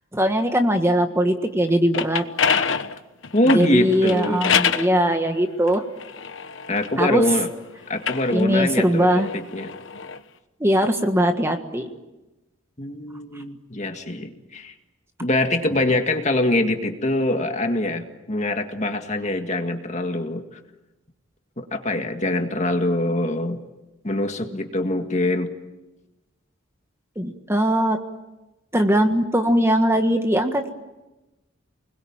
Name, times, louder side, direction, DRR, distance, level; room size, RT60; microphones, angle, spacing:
voice 1, 0.1-2.2 3.5-5.8 7.0-7.2 8.3-9.3 10.6-11.9 27.1-28.0 28.7-30.7, equal, 15° right, 6 dB, 1.6 m, -20 dB
sound 1, 1.7-4.9 5.7-7.4 7.9-10.2, left 6 dB, 70° left, 1.1 m, -26 dB
voice 2, 3.3-4.5 6.7-7.5 7.9-9.7 12.8-14.7 15.2-20.6 21.6-23.6 24.0-25.5, left 1 dB, 35° left, 5 dB, 2.0 m, -24 dB
29.5 x 21.0 x 8.9 m, 1.1 s
head